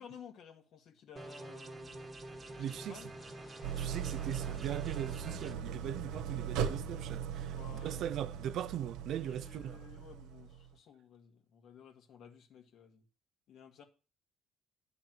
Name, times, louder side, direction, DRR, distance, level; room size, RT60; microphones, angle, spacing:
voice 1, 0.0-2.1 2.6-3.1 7.4-8.1 9.2-13.0 13.5-13.8, left 7 dB, 60° left, 2.0 m, -54 dB
sound 1, 1.2-5.5, right 2 dB, 25° right, 1.3 m, -48 dB
sound 2, 1.5-7.4, left 3 dB, 30° left, 2.2 m, -61 dB
voice 2, 2.6-3.0 3.8-7.6 7.8-9.8, right 10 dB, 60° right, 0.4 m, -40 dB
Idling, 3.6-10.7, right 8 dB, 90° right, 1.0 m, -39 dB
11.0 x 4.0 x 7.6 m
cardioid pair, 115°, 0 cm